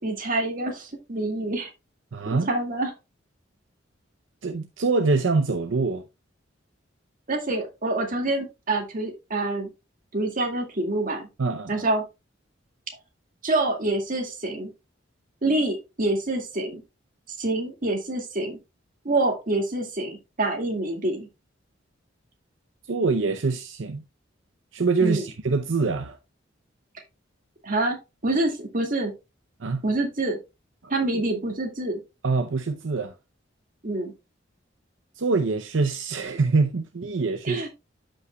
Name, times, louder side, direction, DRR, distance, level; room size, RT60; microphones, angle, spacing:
voice 1, 0.0-1.7 2.3-2.9 7.3-9.7 10.1-11.3 11.7-12.0 13.4-14.7 15.4-16.8 17.4-18.6 19.0-21.3 25.0-25.2 27.6-29.1 29.8-30.4 30.9-32.0 33.8-34.1 37.4-37.7, right 2 dB, 45° right, 2.1 m, -26 dB
voice 2, 2.1-2.5 4.4-6.0 11.4-11.9 22.9-24.0 24.7-26.2 29.6-29.8 30.8-30.9 32.2-33.2 35.2-37.7, right 4 dB, 75° right, 0.7 m, -24 dB
13.0 x 5.6 x 2.3 m
head